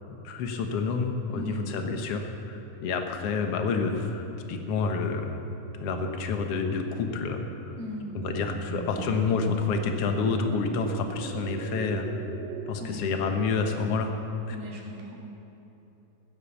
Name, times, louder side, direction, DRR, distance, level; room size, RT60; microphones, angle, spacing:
voice 1, 0.1-5.3 5.8-7.4 8.2-12.1 12.7-14.1 14.5-14.6, left 4 dB, 60° left, 5 dB, 1.7 m, -28 dB
voice 2, 1.3-1.6 7.8-8.1 12.8-13.0 14.5-15.1, left 1 dB, 15° left, -4 dB, 0.9 m, -38 dB
sound 1, 7.3-12.7, right 7 dB, 80° right, 1.5 m, -39 dB
15.5 x 10.5 x 7.1 m, 3.0 s
omnidirectional pair, 3.8 m